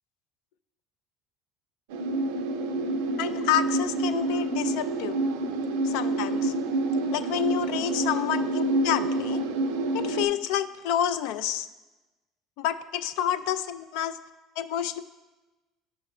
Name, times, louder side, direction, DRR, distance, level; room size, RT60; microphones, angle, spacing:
sound 1, 1.9-10.2, right 2 dB, 85° right, 0.5 m, -28 dB
voice 1, 3.2-5.2 5.8-6.5 7.1-9.4 9.9-11.7 12.6-14.2 14.6-15.0, left 10 dB, 75° left, 13 dB, 0.3 m, -29 dB
10.5 x 5.5 x 2.2 m, 1.1 s
supercardioid pair, 85°, 0 cm